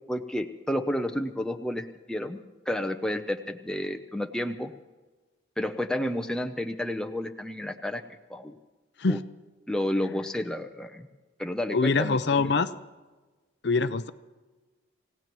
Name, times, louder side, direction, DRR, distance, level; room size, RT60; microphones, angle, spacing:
voice 1, 0.1-2.4 2.7-4.7 5.6-8.0 8.3-8.6 9.1-9.2 9.7-11.1 11.4-12.5, left 1 dB, 5° left, 5 dB, 0.7 m, -31 dB
voice 2, 11.7-12.7 13.6-14.1, left 4 dB, 55° left, 12 dB, 0.6 m, -24 dB
28.0 x 16.5 x 3.1 m, 1.2 s
head